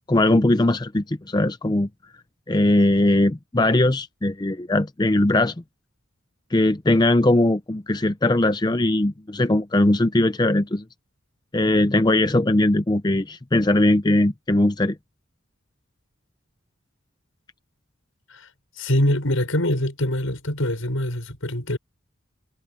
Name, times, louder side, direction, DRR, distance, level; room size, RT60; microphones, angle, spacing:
voice 1, 0.1-1.9 2.5-5.5 6.5-10.8 11.5-15.0, left 1 dB, 20° left, 0.6 m, -20 dB
voice 2, 18.8-21.8, left 1 dB, 80° left, 6.1 m, -24 dB
head